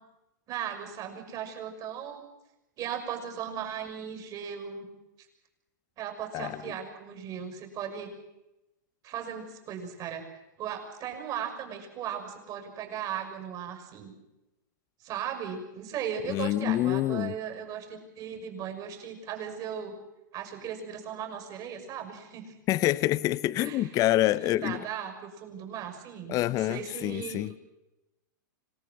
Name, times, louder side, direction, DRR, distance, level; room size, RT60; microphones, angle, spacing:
voice 1, 0.5-2.2 2.8-4.9 6.0-8.1 9.0-10.2 10.6-14.1 15.0-19.9 20.3-22.5 23.6-23.9 24.4-27.6, right 8 dB, 35° right, 6.6 m, -37 dB
voice 2, 6.3-6.7 16.2-17.3 22.7-24.8 26.3-27.5, left 15 dB, 35° left, 0.8 m, -27 dB
26.0 x 18.5 x 7.9 m
hypercardioid pair, 130°, 11 cm